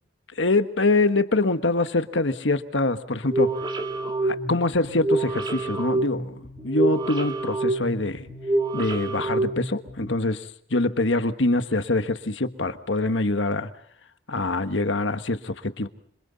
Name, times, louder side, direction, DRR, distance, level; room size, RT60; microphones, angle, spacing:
voice 1, 0.4-3.6 4.2-6.3 6.6-8.3 8.7-10.4 10.7-13.7 14.3-15.9, left 2 dB, 90° left, 1.5 m, -24 dB
sound 1, 3.2-10.1, right 2 dB, 25° right, 2.6 m, -27 dB
27.0 x 27.0 x 4.1 m
head